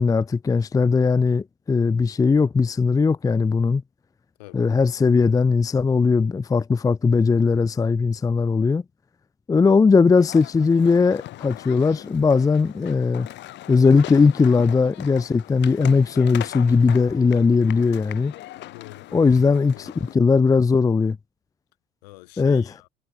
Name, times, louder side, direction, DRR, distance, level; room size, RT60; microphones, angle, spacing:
voice 1, 0.0-3.8 4.5-8.8 9.5-13.3 13.7-18.3 19.1-21.2 22.4-22.6, left 4 dB, 15° left, 0.5 m, -19 dB
voice 2, 4.4-4.7 18.6-19.3 19.7-20.4 22.0-22.9, left 22 dB, 75° left, 5.5 m, -46 dB
sound 1, 10.2-20.1, left 15 dB, 60° left, 6.0 m, -40 dB
hypercardioid pair, 65°, 21 cm